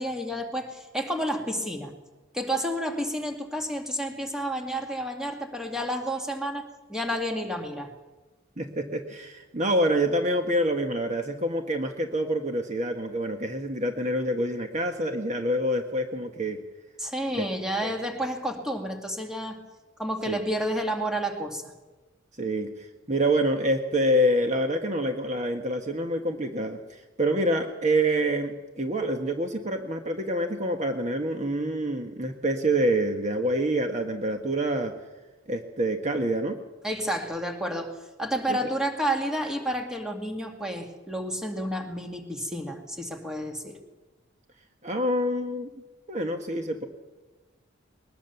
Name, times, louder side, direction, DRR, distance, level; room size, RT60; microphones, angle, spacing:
voice 1, 0.0-1.9 2.3-7.9 17.0-19.6 20.0-21.7 36.8-43.7, equal, 5° right, 3 dB, 2.3 m, -30 dB
voice 2, 8.6-16.6 17.4-17.5 17.8-17.9 20.3-20.4 22.4-34.9 35.5-36.6 38.5-38.6 44.8-45.7 46.1-46.9, right 1 dB, 35° right, 5 dB, 1.5 m, -26 dB
21.5 x 20.0 x 7.0 m, 1.2 s
head